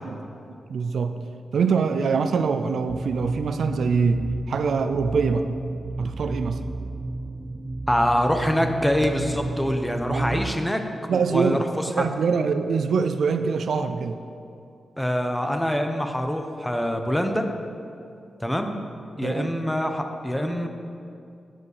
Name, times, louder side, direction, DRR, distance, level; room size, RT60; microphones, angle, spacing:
voice 1, 0.0-1.2 1.5-5.5 6.0-6.6 10.1-10.4 11.1-14.2 19.2-19.5, right 5 dB, 75° right, 9 dB, 0.4 m, -24 dB
sound 1, 2.9-10.5, right 2 dB, 30° right, 0.6 m, -32 dB
voice 2, 7.9-10.8 11.1-11.6 12.0-12.1 15.0-17.5 18.4-18.7 19.2-20.7, equal, 5° left, 5 dB, 0.9 m, -24 dB
11.0 x 5.2 x 6.7 m, 2.5 s
cardioid pair, 65°, 0 cm